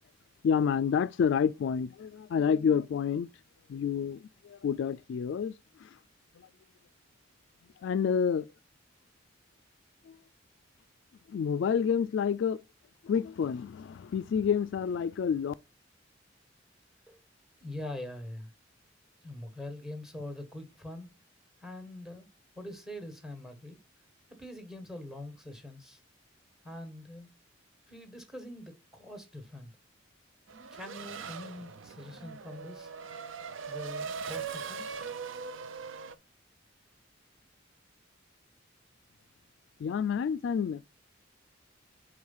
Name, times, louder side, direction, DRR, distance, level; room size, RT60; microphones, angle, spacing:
voice 1, 0.4-3.3 3.7-6.0 6.4-6.5 7.8-8.5 10.1-10.2 11.3-12.6 13.0-15.5 39.8-40.8, left 7 dB, 65° left, 0.3 m, -29 dB
voice 2, 17.6-18.5 19.2-21.1 21.6-22.3 22.5-23.8 24.3-26.0 26.6-27.3 27.9-29.7 30.7-32.9 33.7-35.0, left 1 dB, ahead, 1.4 m, -43 dB
Race car auto racing / Accelerating revving vroom, 30.5-36.1, right 5 dB, 75° right, 0.6 m, -40 dB
4.8 x 4.7 x 5.4 m
head